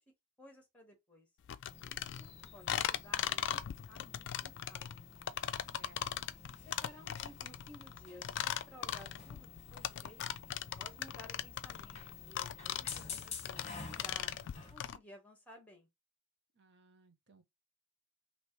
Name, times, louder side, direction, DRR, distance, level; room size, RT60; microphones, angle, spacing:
voice 1, 0.4-1.3 1.8-3.6 3.9-5.0 6.6-10.2 10.8-14.3 14.7-15.9, left 1 dB, 5° left, 1.4 m, -56 dB
sound 1, 1.5-15.0, left 10 dB, 55° left, 0.3 m, -39 dB
sound 2, 1.7-14.7, left 5 dB, 30° left, 1.1 m, -50 dB
voice 2, 5.6-6.3 16.5-17.4, right 2 dB, 55° right, 0.9 m, -64 dB
3.2 x 2.9 x 4.3 m
head